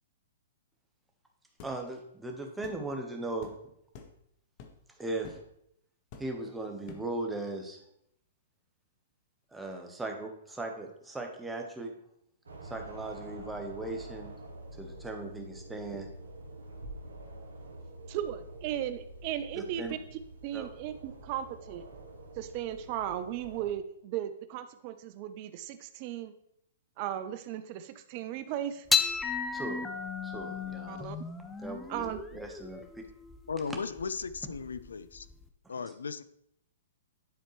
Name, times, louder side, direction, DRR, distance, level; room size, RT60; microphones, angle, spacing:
sound 1, 1.6-1.8 2.6-2.8 3.4-3.6 3.9-4.2 4.6-4.8 5.2-5.5 6.1-6.5 6.9-7.2, left 5 dB, 45° left, 0.9 m, -48 dB
voice 1, 1.6-3.5 5.0-5.4 6.2-7.8 9.5-11.9 12.6-14.3 14.8-16.1 19.8-19.9 20.5-20.7 29.5-29.8 30.2-31.1 31.6-32.0 32.3-33.0, right 2 dB, 5° right, 3 dB, 1.2 m, -38 dB
sound 2, 12.5-23.7, right 2 dB, 90° right, 1.1 m, -47 dB
voice 2, 18.1-20.0 20.4-21.9 22.4-26.3 27.0-28.9 30.9-31.2 31.9-32.4, right 11 dB, 45° right, 11 dB, 0.5 m, -36 dB
sound 3, 28.9-35.4, left 6 dB, 10° left, 0.6 m, -34 dB
voice 3, 33.5-35.3 35.7-36.2, left 5 dB, 85° left, 15 dB, 0.4 m, -36 dB
10.5 x 4.3 x 3.2 m, 0.74 s
hypercardioid pair, 125°, 0 cm